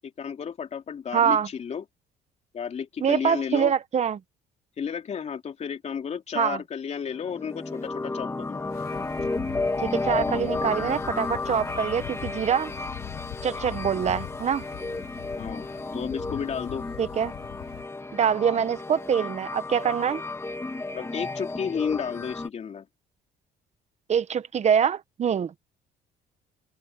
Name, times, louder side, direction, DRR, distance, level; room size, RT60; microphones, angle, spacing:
voice 1, 0.2-1.8 2.5-3.7 4.8-8.6 15.4-15.7 15.9-16.8 20.9-22.9, left 7 dB, 40° left, 3.1 m, -32 dB
voice 2, 1.1-1.5 3.0-4.2 6.3-6.6 9.8-12.7 13.4-14.6 17.0-17.3 18.1-20.2 24.1-25.5, right 8 dB, 40° right, 1.3 m, -24 dB
sound 1, 7.1-22.5, left 3 dB, 15° left, 2.5 m, -33 dB
Wind, 8.7-17.9, left 15 dB, 65° left, 1.2 m, -42 dB
cardioid pair, 110°, 17 cm